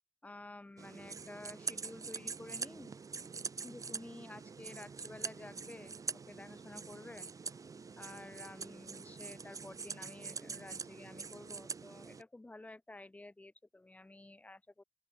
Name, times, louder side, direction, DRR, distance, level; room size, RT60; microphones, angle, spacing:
voice 1, 0.2-2.9 3.6-7.3 8.0-14.8, left 2 dB, 20° left, 6.2 m, -51 dB
sound 1, 0.8-12.2, right 5 dB, 65° right, 3.3 m, -44 dB
open air
wide cardioid pair, 105°, 6 cm